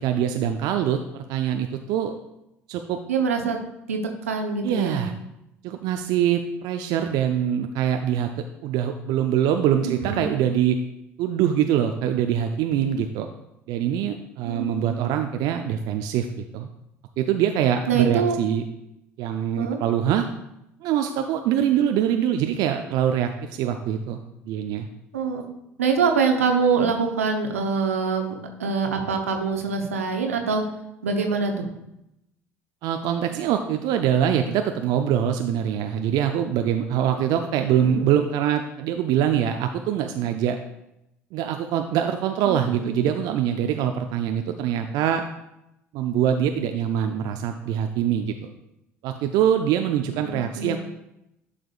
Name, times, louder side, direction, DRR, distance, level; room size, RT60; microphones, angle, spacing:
voice 1, 0.0-2.1 2.7-3.0 4.6-5.1 5.6-8.3 8.6-10.8 11.2-13.3 13.7-16.7 17.2-18.6 19.2-20.2 20.8-24.2 24.5-24.9 32.8-40.6 41.3-45.2 45.9-48.3 49.0-50.8, right 9 dB, 60° right, 6 dB, 0.5 m, -24 dB
voice 2, 3.1-3.6 3.9-4.0 4.3-5.1 9.8-10.3 14.4-15.0 17.9-18.4 19.6-19.8 25.1-25.4 25.8-30.6 31.0-31.7 37.8-38.0 42.4-43.0 50.1-50.8, right 5 dB, 85° right, 4 dB, 0.8 m, -24 dB
11.0 x 5.0 x 2.4 m, 0.85 s
hypercardioid pair, 60°, 7 cm